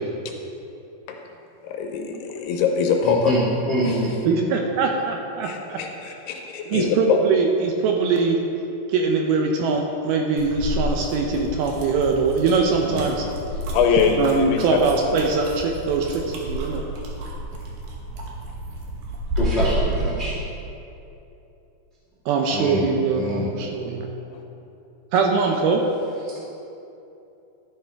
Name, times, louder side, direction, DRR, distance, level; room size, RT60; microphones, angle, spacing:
voice 1, 1.6-3.4 3.8-4.0 5.4-7.2 13.7-14.8 24.3-24.4, left 6 dB, 80° left, 3 dB, 2.6 m, -23 dB
voice 2, 3.0-4.1 12.8-13.1 19.3-20.4 22.5-22.9 23.1-23.5, equal, 50° left, -8 dB, 0.7 m, -25 dB
voice 3, 4.2-5.8 6.7-8.4 8.9-13.2 14.2-16.8 22.3-24.2 25.1-25.8, right 4 dB, 80° right, 1 dB, 2.3 m, -22 dB
sound 1, 10.4-20.0, right 1 dB, 65° right, 2.2 m, -30 dB
12.5 x 8.3 x 3.5 m, 2.8 s
omnidirectional pair, 4.9 m